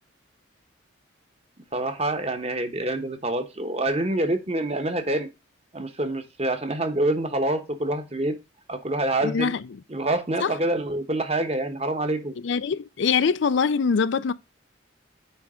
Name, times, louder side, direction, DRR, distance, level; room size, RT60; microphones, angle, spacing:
voice 1, 1.7-5.3 5.7-8.4 8.7-9.5 9.9-12.4, right 1 dB, 30° right, 1.0 m, -26 dB
voice 2, 9.2-9.6 10.4-10.5 12.4-14.3, left 5 dB, 65° left, 0.4 m, -23 dB
9.0 x 3.4 x 4.9 m
head